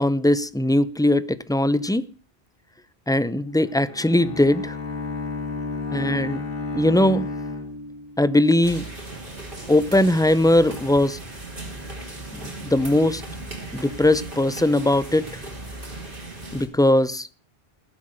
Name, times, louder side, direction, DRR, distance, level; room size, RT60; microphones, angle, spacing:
voice 1, 0.0-2.0 3.1-4.7 5.9-6.4 6.7-7.3 8.2-8.8 9.7-11.2 12.6-13.2 13.7-15.3 16.5-17.3, left 1 dB, 5° left, 0.4 m, -20 dB
Bowed string instrument, 3.7-8.4, left 3 dB, 60° left, 2.0 m, -31 dB
sound 1, 8.6-16.7, right 2 dB, 55° right, 3.5 m, -37 dB
18.0 x 7.9 x 6.5 m
omnidirectional pair, 1.1 m